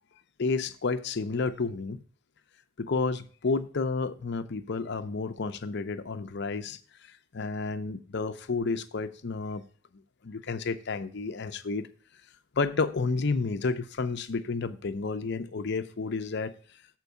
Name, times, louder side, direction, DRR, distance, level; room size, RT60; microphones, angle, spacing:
voice 1, 0.4-2.0 2.8-6.8 7.3-9.6 10.2-11.9 12.6-16.5, left 4 dB, 55° left, 0.6 m, -31 dB
7.4 x 4.5 x 6.7 m
head